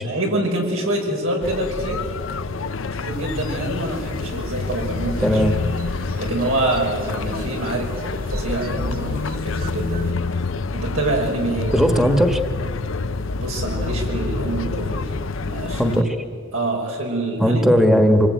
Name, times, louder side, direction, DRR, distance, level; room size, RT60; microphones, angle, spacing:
voice 1, 0.0-2.1 2.9-5.4 6.2-7.9 8.3-10.2 10.7-11.9 13.4-15.0 15.4-16.0 16.5-17.6, right 1 dB, 90° right, 0 dB, 6.2 m, -26 dB
sound 1, 1.4-16.0, left 3 dB, 70° left, 0.7 m, -27 dB
sound 2, 3.1-10.1, equal, 45° right, 1.7 m, -35 dB
voice 2, 5.2-5.5 11.7-12.4 15.7-16.0 17.4-18.3, equal, 5° right, 5 dB, 1.4 m, -17 dB
26.0 x 21.5 x 9.5 m, 2.4 s
head